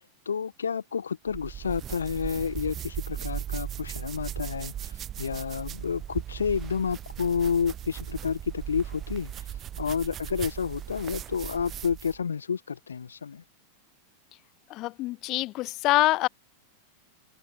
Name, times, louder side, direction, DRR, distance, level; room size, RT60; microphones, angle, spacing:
voice 1, 0.2-9.3 9.8-13.4, left 6 dB, 70° left, 1.5 m, -30 dB
sound 1, 1.3-12.2, right 10 dB, 30° right, 1.0 m, -37 dB
voice 2, 14.7-16.3, left 18 dB, 40° left, 0.3 m, -25 dB
figure-of-eight pair, 90°, 0 cm